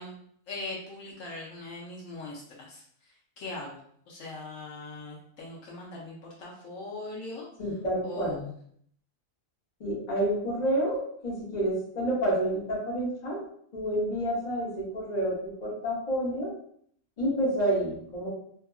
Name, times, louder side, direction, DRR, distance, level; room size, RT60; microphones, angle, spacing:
voice 1, 0.0-3.8 4.1-7.5 8.0-8.4, left 2 dB, 75° left, -4 dB, 1.0 m, -40 dB
voice 2, 7.6-8.4 9.8-13.4 13.7-16.5 17.2-18.3, right 1 dB, 35° left, -6 dB, 0.9 m, -29 dB
2.7 x 2.5 x 2.3 m, 0.64 s
omnidirectional pair, 1.4 m